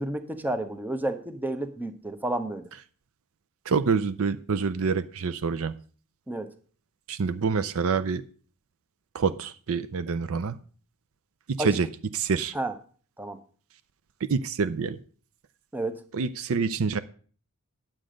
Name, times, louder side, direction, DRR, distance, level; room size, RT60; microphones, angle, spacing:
voice 1, 0.0-2.7 6.3-6.5 11.6-11.8 12.5-12.7 13.2-13.4 15.7-16.0, right 1 dB, 10° right, 9 dB, 0.8 m, -31 dB
voice 2, 3.7-5.7 7.1-8.2 9.1-10.6 11.5-11.9 12.1-12.5 14.2-15.0 16.1-17.0, right 5 dB, 65° right, 13 dB, 0.5 m, -26 dB
9.7 x 7.6 x 5.1 m, 0.42 s
head